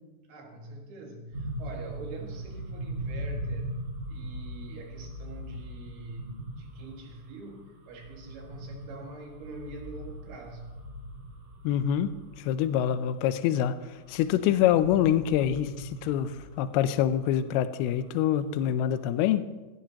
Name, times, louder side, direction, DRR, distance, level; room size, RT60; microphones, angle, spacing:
voice 1, 0.3-10.7 14.3-14.5, right 3 dB, 75° right, 1 dB, 3.8 m, -45 dB
sound 1, 1.3-19.2, right 1 dB, 45° right, 2.6 m, -41 dB
voice 2, 11.6-13.8 14.1-19.5, left 10 dB, 80° left, 12 dB, 2.5 m, -26 dB
16.5 x 15.0 x 2.9 m, 1.2 s
omnidirectional pair, 4.7 m